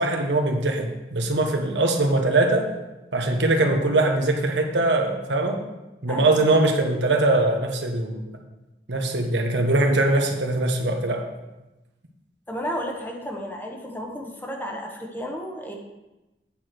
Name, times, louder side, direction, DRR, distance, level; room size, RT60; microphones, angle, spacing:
voice 1, 0.0-2.7 3.1-5.6 6.0-8.4 8.9-11.3, right 2 dB, 85° right, 4 dB, 1.1 m, -22 dB
voice 2, 12.5-15.7, equal, 10° left, 1 dB, 1.0 m, -32 dB
8.6 x 4.8 x 5.9 m, 1.0 s
head